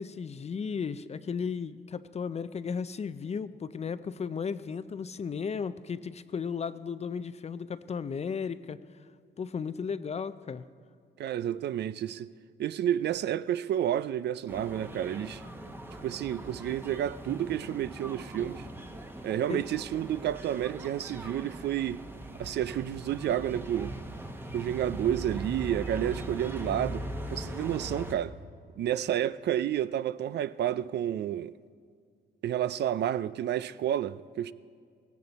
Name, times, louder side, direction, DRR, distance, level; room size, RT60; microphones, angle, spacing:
voice 1, 0.0-8.8 9.4-10.6 19.5-19.6, left 6 dB, 35° left, 0.5 m, -35 dB
voice 2, 11.2-12.3 12.6-15.4 16.0-18.7 19.2-22.0 22.4-23.9 24.5-28.3 28.8-31.5 32.4-34.5, right 11 dB, 60° right, 0.4 m, -30 dB
sound 1, 14.5-28.2, right 1 dB, 10° right, 1.1 m, -40 dB
17.5 x 15.5 x 4.1 m
cardioid pair, 90°, 20 cm